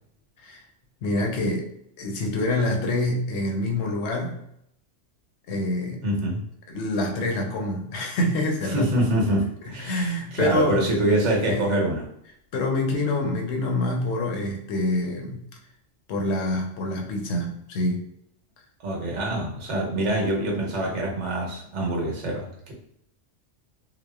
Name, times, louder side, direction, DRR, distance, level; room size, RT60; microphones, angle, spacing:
voice 1, 1.0-1.7 2.0-4.4 5.5-6.0 6.7-8.9 9.8-10.9 11.5-11.7 12.5-15.5 16.1-18.0, left 2 dB, 70° left, 2 dB, 0.8 m, -26 dB
voice 2, 6.0-6.4 8.7-12.1 18.8-22.7, right 1 dB, 75° right, -2 dB, 1.1 m, -25 dB
2.8 x 2.1 x 2.2 m, 0.74 s
omnidirectional pair, 1.2 m